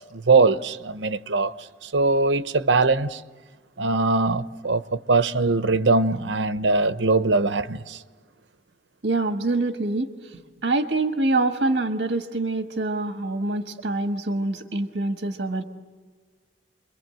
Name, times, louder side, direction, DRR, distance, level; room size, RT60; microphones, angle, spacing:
voice 1, 0.1-1.5 1.8-3.2 3.8-8.0, right 3 dB, 85° right, 0.9 m, -21 dB
voice 2, 9.0-15.6, right 2 dB, 70° right, 1.4 m, -25 dB
29.5 x 23.0 x 7.8 m
head